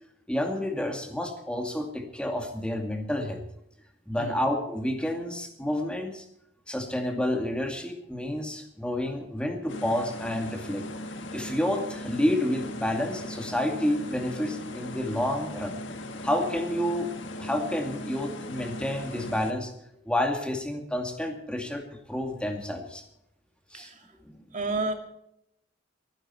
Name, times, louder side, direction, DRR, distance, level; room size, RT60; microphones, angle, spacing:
voice 1, 0.3-3.4 4.1-6.2 6.7-10.8 11.3-15.8 16.2-19.7 20.1-21.8 22.1-23.0 23.7-23.9 24.3-24.4, left 1 dB, 5° left, 4 dB, 2.3 m, -29 dB
sound 1, 9.7-19.5, left 1 dB, 75° left, 1.6 m, -38 dB
voice 2, 23.7-24.1 24.5-24.9, right 3 dB, 40° right, 5 dB, 2.2 m, -31 dB
22.5 x 10.5 x 4.4 m, 0.79 s
head